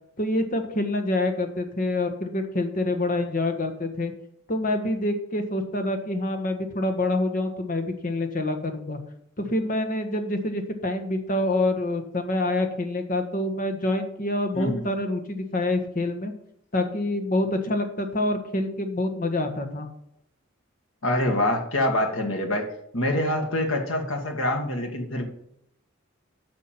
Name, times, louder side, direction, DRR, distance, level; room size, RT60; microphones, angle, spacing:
voice 1, 0.2-4.1 4.5-9.0 9.4-16.3 16.7-19.9, left 2 dB, 40° left, 6 dB, 1.4 m, -26 dB
voice 2, 21.0-22.7 22.9-25.2, left 1 dB, 75° left, 3 dB, 2.1 m, -25 dB
9.8 x 6.2 x 5.9 m, 0.74 s
head